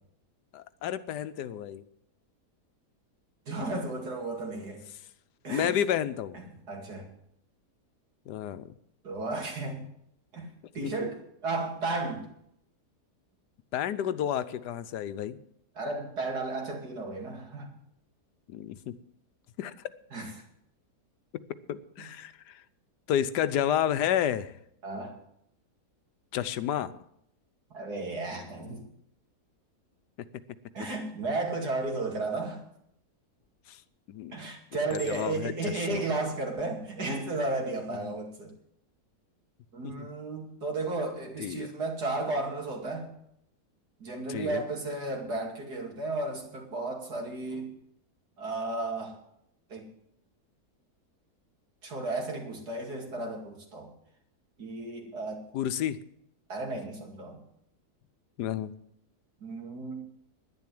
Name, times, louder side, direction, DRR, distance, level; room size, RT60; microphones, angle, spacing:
voice 1, 0.5-1.8 5.5-6.4 8.3-8.7 11.0-11.1 13.7-15.4 18.5-19.0 19.6-19.7 21.7-22.6 23.1-24.5 26.3-26.9 33.7-33.8 34.1-34.4 35.1-36.1 37.9-38.2 39.8-40.1 41.4-41.7 44.3-44.6 55.5-56.0 58.4-58.7, left 10 dB, 85° left, 14 dB, 1.3 m, -31 dB
voice 2, 3.5-4.8 5.4-5.7 6.7-7.1 9.0-9.8 10.3-12.2 15.8-17.7 20.1-20.3 22.0-22.1 24.8-25.1 27.7-28.8 30.7-32.6 34.3-38.5 39.7-43.1 44.0-47.7 48.4-49.2 49.7-49.8 51.8-53.9 54.6-55.4 56.5-57.4 59.4-60.0, right 2 dB, 70° right, 1 dB, 2.9 m, -33 dB
Chink clink, 33.4-33.9 34.9-35.7 36.4-36.7, left 5 dB, 45° left, 0.6 m, -48 dB
11.0 x 10.5 x 7.6 m, 0.74 s
omnidirectional pair, 1.8 m